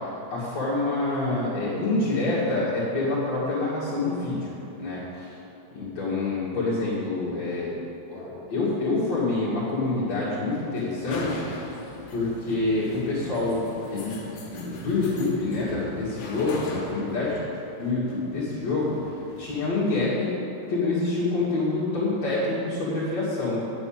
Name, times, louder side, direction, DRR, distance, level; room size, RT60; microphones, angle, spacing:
voice 1, 0.3-4.5 4.8-5.3 5.7-7.7 8.1-11.7 12.1-14.2 14.5-17.5 17.8-20.3 20.7-23.6, left 2 dB, 65° left, -10 dB, 3.4 m, -27 dB
sound 1, 9.1-19.8, left 2 dB, 80° left, 2.8 m, -41 dB
9.1 x 7.0 x 8.8 m, 3.0 s
omnidirectional pair, 3.3 m